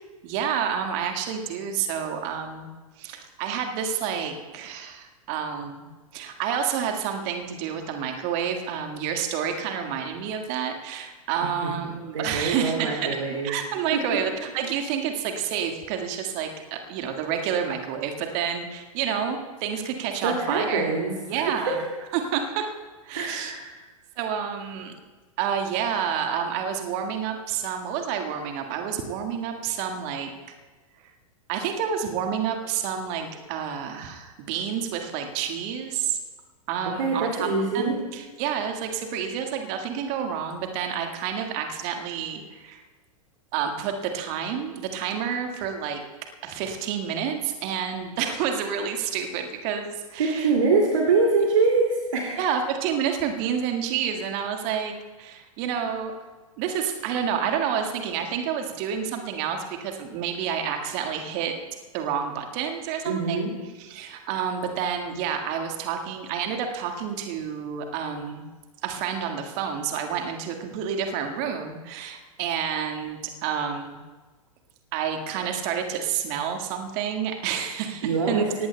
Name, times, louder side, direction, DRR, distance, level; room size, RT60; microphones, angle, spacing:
voice 1, 0.2-2.7 3.0-5.8 6.1-20.9 21.3-21.8 22.1-22.7 23.0-23.5 24.2-24.9 25.4-30.3 31.5-36.2 36.7-37.5 37.7-42.8 43.5-46.0 46.4-50.5 52.4-56.2 56.6-61.6 61.9-63.5 63.8-68.5 68.8-74.0 74.9-78.7, right 8 dB, 40° right, 4 dB, 1.8 m, -29 dB
voice 2, 11.4-11.7 12.1-13.5 13.9-14.2 20.2-21.8 23.1-23.8 36.9-38.0 50.2-52.4 63.0-63.5 78.0-78.7, right 4 dB, 60° right, -1 dB, 2.5 m, -24 dB
24.0 x 18.0 x 2.3 m, 1.3 s
figure-of-eight pair, 100°, 18 cm